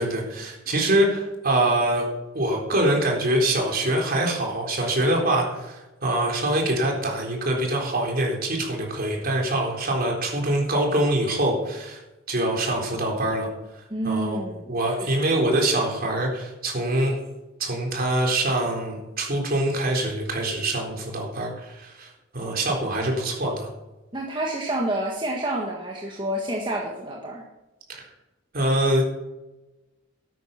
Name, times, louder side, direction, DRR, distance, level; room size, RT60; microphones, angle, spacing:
voice 1, 0.0-2.1 2.3-12.0 12.3-13.5 14.0-14.4 14.7-17.2 17.6-23.7 27.9-28.0 28.5-29.0, right 1 dB, 50° right, 0 dB, 3.9 m, -24 dB
voice 2, 13.9-14.7 15.1-15.2 24.1-27.4, right 1 dB, 25° right, -2 dB, 1.7 m, -28 dB
12.5 x 9.6 x 5.9 m, 1.0 s
head